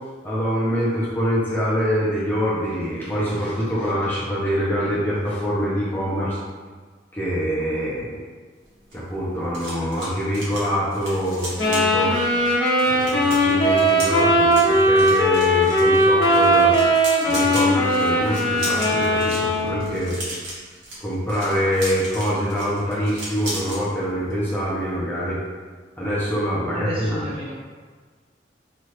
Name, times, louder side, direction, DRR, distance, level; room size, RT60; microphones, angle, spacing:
voice 1, 0.2-6.4 7.1-8.2 8.9-12.2 12.9-16.7 17.3-20.2 21.0-25.4 26.0-27.2, equal, 10° left, -9 dB, 0.6 m, -25 dB
sound 1, 8.6-23.8 24.1-24.4 24.7-24.9, right 1 dB, 75° right, 1.1 m, -36 dB
sound 2, 11.6-20.0, equal, 80° left, 0.9 m, -19 dB
voice 2, 26.7-27.5, right 1 dB, 35° right, -7 dB, 0.9 m, -30 dB
3.1 x 2.4 x 2.8 m, 1.5 s
head